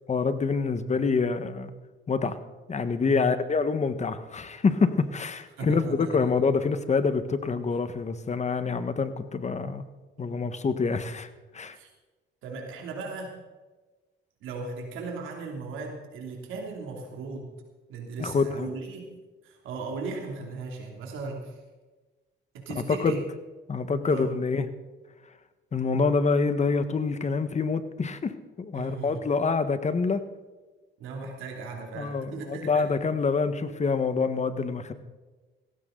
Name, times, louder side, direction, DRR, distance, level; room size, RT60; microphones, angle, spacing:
voice 1, 0.1-1.7 2.1-2.4 2.7-9.8 10.2-11.3 11.5-11.8 18.2-18.7 22.9-23.2 23.7-24.7 25.7-28.3 28.6-30.2 32.0-34.9, left 4 dB, 35° left, 11 dB, 1.4 m, -26 dB
voice 2, 5.6-6.4 10.2-10.3 11.7-11.9 12.4-13.3 14.4-17.5 17.9-19.2 19.4-21.6 22.5-23.2 24.0-24.3 28.7-29.2 31.0-32.9, right 4 dB, 90° right, 1 dB, 3.0 m, -37 dB
16.5 x 15.5 x 3.9 m, 1.2 s
cardioid pair, 90°, 20 cm